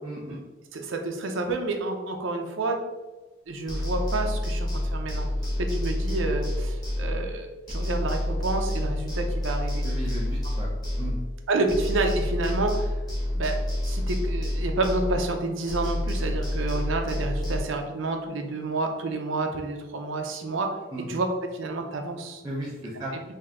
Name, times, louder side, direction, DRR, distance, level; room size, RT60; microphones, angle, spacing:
voice 1, 0.0-0.4 9.8-10.7 11.0-11.1 20.9-21.1 22.4-23.1, right 1 dB, 20° right, -6 dB, 0.6 m, -35 dB
voice 2, 0.7-2.8 3.5-5.3 5.6-9.9 11.5-13.0 13.3-13.5 13.9-20.8 21.1-21.3 21.5-22.4, right 2 dB, 70° right, 4 dB, 0.6 m, -29 dB
sound 1, 3.7-7.4 7.7-11.4 11.7-15.4 15.7-17.6, left 1 dB, 20° left, 1.1 m, -28 dB
3.6 x 2.7 x 3.4 m, 1.2 s
head